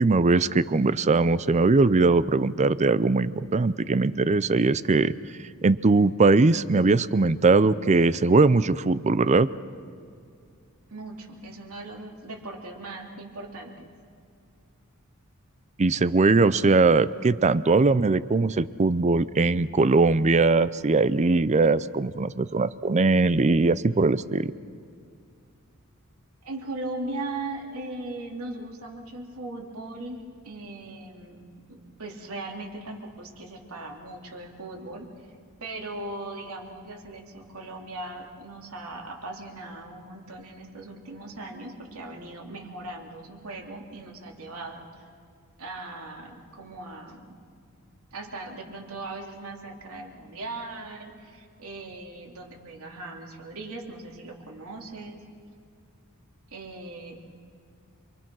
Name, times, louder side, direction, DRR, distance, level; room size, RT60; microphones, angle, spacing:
voice 1, 0.0-5.1 5.6-9.5 15.8-24.5, right 3 dB, 30° right, 16 dB, 0.5 m, -21 dB
voice 2, 10.9-13.9 26.4-35.1 35.6-45.0 45.6-47.4 48.1-55.3 56.5-57.2, right 2 dB, 75° right, 1 dB, 3.2 m, -39 dB
28.0 x 23.5 x 6.2 m, 2.3 s
head